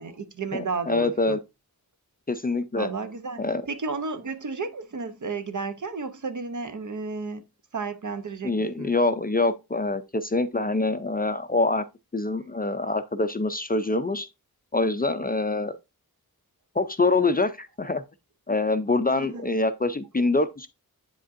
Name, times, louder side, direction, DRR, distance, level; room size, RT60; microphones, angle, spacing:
voice 1, 0.0-1.4 2.7-7.4 7.7-8.9 19.2-19.5, right 4 dB, 50° right, 0.7 m, -33 dB
voice 2, 0.5-1.4 2.3-2.9 3.4-3.7 8.4-11.8 12.1-14.3 14.7-15.8 16.8-18.0 18.5-20.7, left 3 dB, 25° left, 0.4 m, -25 dB
8.1 x 5.0 x 2.5 m
wide cardioid pair, 90°, 38 cm